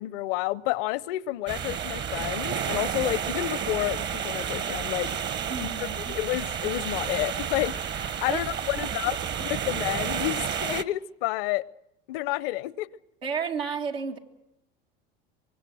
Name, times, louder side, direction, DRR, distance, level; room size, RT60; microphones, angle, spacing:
voice 1, 0.0-5.1 5.6-11.7 12.1-12.9, left 17 dB, 70° left, 0.7 m, -30 dB
sound 1, 1.5-10.8, right 8 dB, 40° right, 1.0 m, -31 dB
voice 2, 5.5-6.1 8.3-8.4 8.7-8.9 9.5-9.7 13.2-14.2, right 6 dB, 90° right, 2.0 m, -32 dB
24.5 x 23.5 x 6.3 m
hypercardioid pair, 85°, 29 cm